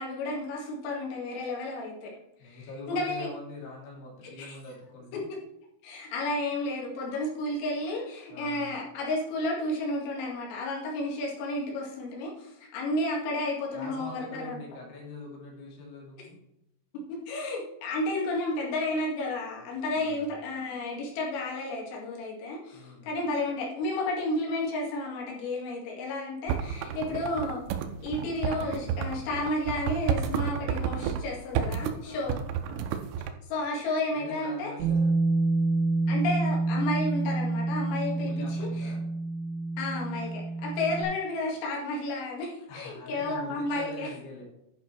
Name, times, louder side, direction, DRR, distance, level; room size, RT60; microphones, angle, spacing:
voice 1, 0.0-2.1 2.4-3.3 4.4-4.6 5.8-14.6 17.1-27.6 28.0-32.3 33.5-34.7 36.1-38.9 39.8-44.1, left 2 dB, 85° left, -3 dB, 4.7 m, -32 dB
voice 2, 2.4-5.3 8.3-8.7 13.7-16.4 19.9-20.3 22.7-23.1 26.8-27.3 32.0-32.9 34.1-35.2 38.2-39.1 40.9-41.0 42.7-44.4, left 2 dB, 50° left, -3 dB, 3.8 m, -44 dB
sound 1, 26.5-31.2 31.6-32.0 32.3-33.3, right 8 dB, 90° right, 3.3 m, -30 dB
Bass guitar, 34.8-41.0, right 3 dB, 70° right, 4.4 m, -28 dB
11.0 x 5.3 x 4.4 m, 0.86 s
omnidirectional pair, 5.8 m